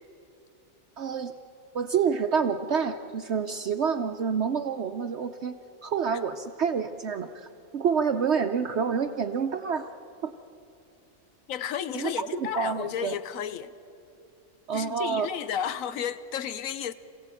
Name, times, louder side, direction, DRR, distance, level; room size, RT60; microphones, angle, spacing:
voice 1, 1.0-1.3 1.7-5.5 5.8-7.5 7.7-9.9 10.2-10.3 11.9-13.2 14.7-15.3, right 6 dB, 60° right, 1.0 m, -28 dB
voice 2, 11.5-13.7 14.7-16.9, left 9 dB, 90° left, 1.1 m, -32 dB
27.5 x 16.0 x 9.0 m
omnidirectional pair, 1.4 m